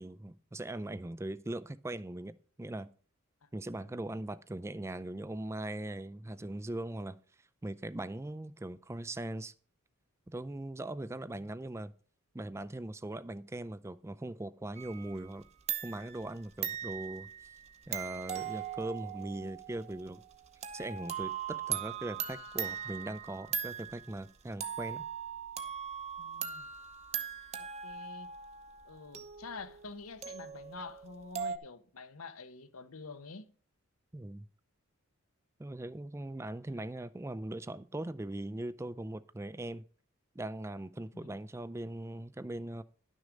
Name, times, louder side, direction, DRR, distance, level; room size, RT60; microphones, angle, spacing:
voice 1, 0.0-2.9 3.5-7.2 7.6-9.5 10.3-11.9 12.3-15.5 15.8-17.5 17.9-20.2 20.7-25.0 34.1-34.5 35.6-39.8 40.4-42.8, right 1 dB, 10° right, 0.3 m, -40 dB
sound 1, 14.8-15.4 15.7-24.2 24.6-31.6, right 8 dB, 30° right, 0.8 m, -40 dB
voice 2, 26.2-26.7 27.6-28.3 28.9-33.5 41.1-41.3, left 4 dB, 80° left, 0.9 m, -48 dB
11.5 x 6.4 x 5.1 m
head